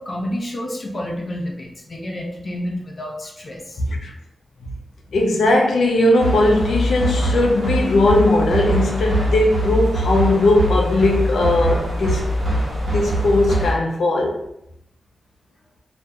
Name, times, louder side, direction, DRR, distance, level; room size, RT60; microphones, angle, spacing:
voice 1, 0.0-3.8, left 1 dB, 30° left, 0.5 m, -29 dB
voice 2, 5.1-12.3 12.8-14.4, left 2 dB, 80° left, 0.5 m, -18 dB
sound 1, 6.2-13.7, right 1 dB, 50° right, 0.9 m, -22 dB
2.9 x 2.4 x 2.2 m
wide cardioid pair, 165°, 0 cm